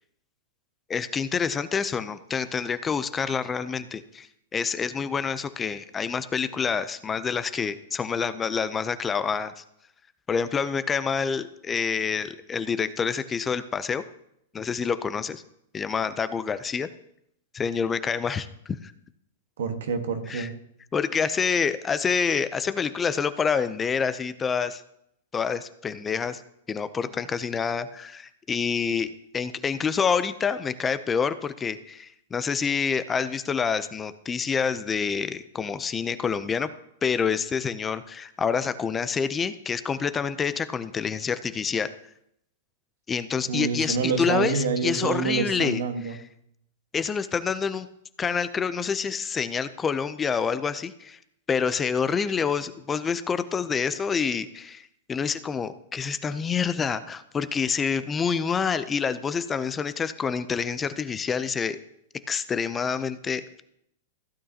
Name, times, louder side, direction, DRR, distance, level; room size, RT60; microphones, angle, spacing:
voice 1, 0.9-9.6 10.3-14.0 14.5-15.4 15.7-16.9 17.5-18.9 20.3-20.5 20.9-24.8 25.3-26.4 26.7-36.7 37.0-41.9 43.1-45.8 46.9-47.9 48.2-51.2 51.5-54.8 55.1-61.8 62.3-63.4, left 6 dB, 20° left, 13 dB, 0.5 m, -27 dB
voice 2, 19.6-20.5 43.5-46.1, right 5 dB, 75° right, 6 dB, 1.4 m, -27 dB
15.5 x 8.6 x 2.9 m, 0.75 s
hypercardioid pair, 120°, 0 cm